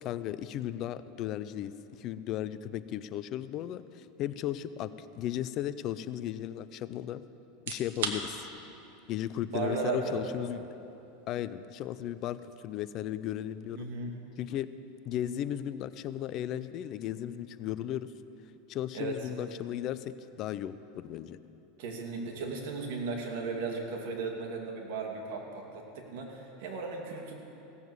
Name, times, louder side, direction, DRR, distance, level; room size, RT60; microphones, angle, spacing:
voice 1, 0.0-1.7 2.0-7.2 7.7-8.5 9.1-10.6 11.3-13.9 14.4-14.7 15.0-18.1 18.7-21.4, left 11 dB, 45° left, 14 dB, 0.4 m, -35 dB
sound 1, 7.5-22.3, right 6 dB, 90° right, 1.3 m, -47 dB
voice 2, 9.5-10.2 13.7-14.1 18.9-19.2 21.8-27.3, right 4 dB, 65° right, 1 dB, 2.4 m, -35 dB
17.0 x 7.1 x 8.0 m, 2.9 s
supercardioid pair, 130°, 0 cm